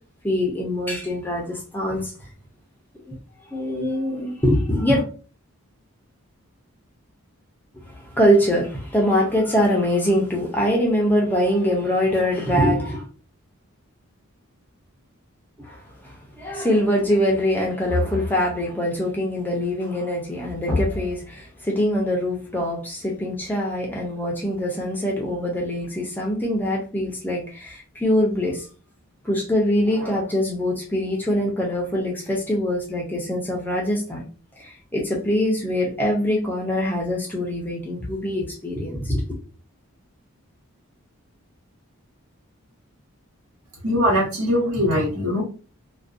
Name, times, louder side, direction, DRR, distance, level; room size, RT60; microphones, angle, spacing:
voice 1, 0.2-2.1 3.1-3.2 3.5-5.1 7.7-13.1 15.6-15.8 16.0-28.7 29.2-34.2 34.6-39.2, equal, 10° left, 0.4 m, -23 dB
voice 2, 43.8-45.4, equal, 80° right, 1.2 m, -21 dB
2.5 x 2.2 x 2.4 m
head